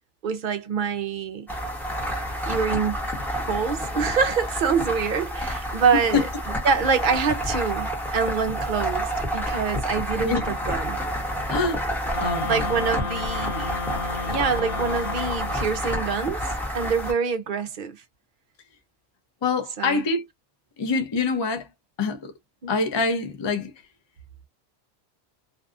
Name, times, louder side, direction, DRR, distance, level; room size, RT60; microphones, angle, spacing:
voice 1, 0.2-1.5 2.5-3.0 3.4-6.3 6.6-11.0 12.4-13.7 14.2-18.0 19.8-20.0 22.6-22.7, right 6 dB, 55° right, 0.6 m, -25 dB
sound 1, 1.5-17.1, equal, ahead, 0.9 m, -29 dB
voice 2, 11.5-11.8 12.2-12.7 19.4-20.3 20.8-21.7 22.0-22.3 22.7-23.7, left 4 dB, 35° left, 0.4 m, -25 dB
sound 2, 12.1-16.0, left 6 dB, 80° left, 1.2 m, -33 dB
2.6 x 2.3 x 2.4 m
omnidirectional pair, 1.2 m